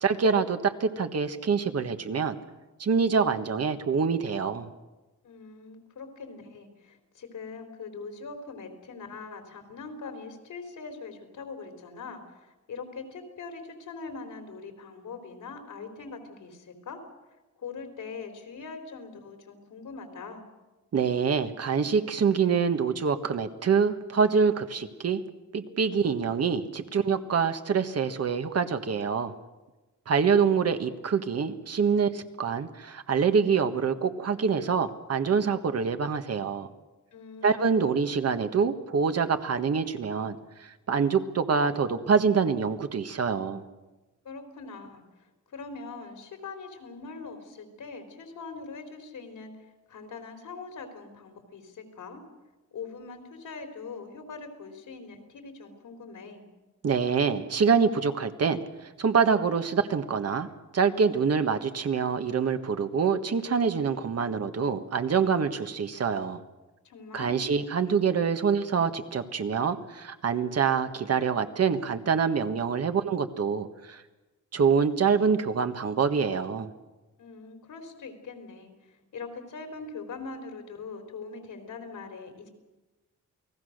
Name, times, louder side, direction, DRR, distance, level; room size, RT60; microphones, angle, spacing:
voice 1, 0.0-2.4 2.8-4.7 20.9-25.2 25.5-29.3 30.1-36.7 37.4-43.6 56.8-58.6 59.0-60.5 60.7-66.4 67.1-74.0 74.5-76.7, right 6 dB, 55° right, 8 dB, 1.5 m, -25 dB
voice 2, 5.2-17.0 17.6-20.5 37.1-37.8 44.2-45.0 45.5-49.5 49.9-52.2 52.7-56.5 66.8-67.4 77.2-78.7 79.1-82.5, left 4 dB, 85° left, 6 dB, 4.0 m, -42 dB
29.0 x 19.0 x 6.6 m, 1.1 s
wide cardioid pair, 120°, 30 cm